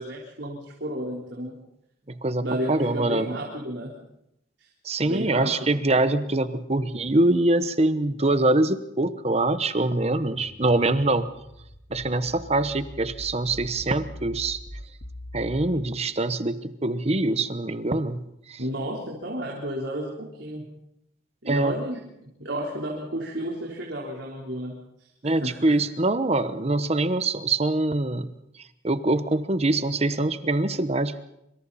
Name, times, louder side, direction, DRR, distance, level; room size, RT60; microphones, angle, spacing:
voice 1, 0.0-1.6 2.4-3.9 5.0-5.7 18.6-20.7 21.4-22.0 22.4-25.1 25.4-25.8, equal, 80° right, -3 dB, 3.9 m, -32 dB
voice 2, 2.1-3.3 4.8-11.3 11.9-14.6 15.3-18.6 21.5-21.7 25.2-28.3 28.8-31.2, right 2 dB, 35° right, 12 dB, 1.0 m, -24 dB
sound 1, 10.3-15.7, left 1 dB, 80° left, 2.1 m, -42 dB
25.5 x 25.5 x 4.2 m, 0.82 s
head